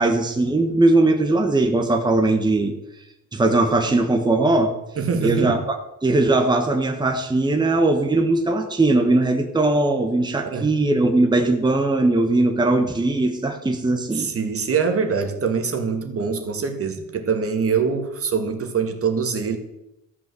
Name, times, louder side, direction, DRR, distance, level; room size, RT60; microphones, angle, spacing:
voice 1, 0.0-2.7 3.3-4.7 5.2-14.3, right 2 dB, 15° right, 4 dB, 1.3 m, -19 dB
voice 2, 5.0-5.6 10.4-10.7 14.1-19.6, right 5 dB, 50° right, 6 dB, 1.8 m, -24 dB
13.5 x 5.6 x 7.7 m, 0.90 s
cardioid pair, 90°, 30 cm